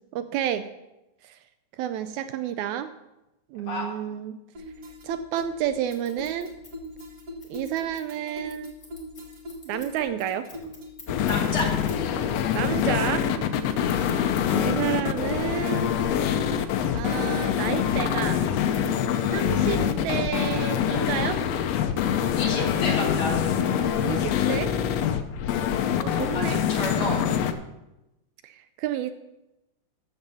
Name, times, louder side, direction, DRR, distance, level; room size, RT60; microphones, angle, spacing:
voice 1, 0.1-0.7 1.2-1.4 1.8-2.9 3.5-4.4 5.0-6.5 7.5-8.7 9.6-10.5 12.5-13.3 13.8-15.9 16.9-18.5 19.3-21.4 24.0-24.7 26.0-26.6 28.4-29.1, right 10 dB, 80° right, 11 dB, 1.8 m, -30 dB
sound 1, 4.5-24.1, left 1 dB, 50° right, 1.1 m, -41 dB
Scissors, 5.9-12.1 12.4-13.6, left 3 dB, 25° left, 2.0 m, -50 dB
sound 2, 11.1-27.5, left 9 dB, 75° left, 1.6 m, -25 dB
voice 2, 11.2-11.7 13.8-14.1 22.3-23.5 26.3-27.2, left 1 dB, 45° left, -2 dB, 2.7 m, -31 dB
13.5 x 4.6 x 7.0 m, 0.95 s
omnidirectional pair, 3.5 m